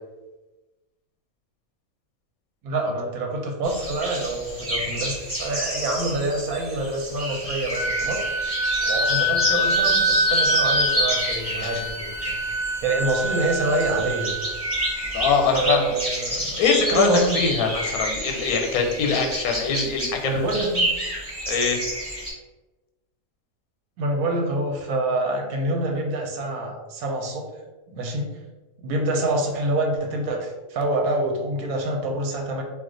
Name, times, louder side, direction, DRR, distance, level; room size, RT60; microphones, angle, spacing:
voice 1, 2.6-8.3 8.8-12.3 12.8-14.4 15.5-17.4 20.2-20.9 24.0-27.5 27.9-28.4 28.8-32.6, right 2 dB, 90° right, 1 dB, 1.1 m, -26 dB
sound 1, 3.6-22.3, equal, 20° right, 0.9 m, -29 dB
Wind instrument woodwind instrument, 7.7-15.5, equal, 70° right, 0.9 m, -26 dB
voice 2, 15.1-15.9 16.6-17.1 17.3-20.4 21.5-21.8, left 5 dB, 90° left, 2 dB, 1.1 m, -23 dB
2.3 x 2.3 x 3.7 m, 1.1 s
omnidirectional pair, 1.5 m